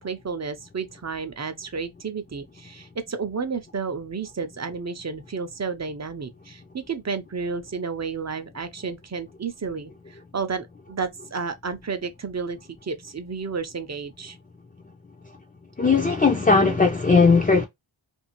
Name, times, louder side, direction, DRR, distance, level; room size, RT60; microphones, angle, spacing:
voice 1, 0.0-14.4 16.6-16.9, right 5 dB, 35° right, 0.5 m, -32 dB
voice 2, 15.8-17.7, left 4 dB, 20° left, 0.4 m, -18 dB
2.6 x 2.4 x 2.8 m
wide cardioid pair, 70°, 50 cm